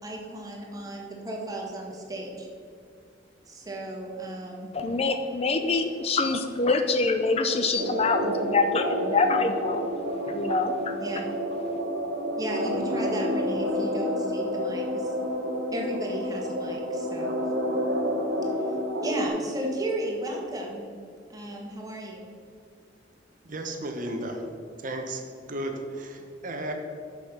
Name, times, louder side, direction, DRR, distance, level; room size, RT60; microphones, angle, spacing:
voice 1, 0.0-2.5 3.5-4.7 11.0-11.2 12.4-15.1 15.7-17.3 19.0-20.8 21.3-22.3, right 1 dB, 20° right, -1 dB, 1.5 m, -34 dB
voice 2, 4.7-9.9 10.3-10.9, left 3 dB, 35° left, 7 dB, 0.5 m, -25 dB
sound 1, 7.8-19.3, equal, 85° right, 1.5 m, -29 dB
voice 3, 23.4-24.5 24.8-26.7, right 1 dB, 45° right, 4 dB, 0.9 m, -34 dB
6.6 x 6.4 x 6.6 m, 2.3 s
head